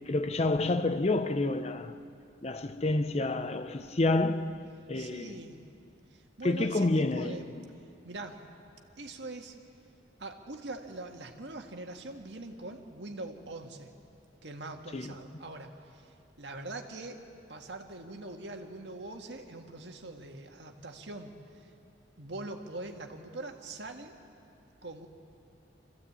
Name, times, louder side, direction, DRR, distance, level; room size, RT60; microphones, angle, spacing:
voice 1, 0.0-2.0 2.4-5.4 6.4-7.7 14.9-15.1, left 2 dB, 35° left, 0.6 m, -29 dB
voice 2, 4.9-5.6 6.1-7.5 8.0-8.5 9.0-9.6 10.2-13.9 14.4-17.2 17.5-21.7 22.2-24.2 24.8-25.1, right 2 dB, 70° right, 1.7 m, -43 dB
25.0 x 15.0 x 8.6 m
head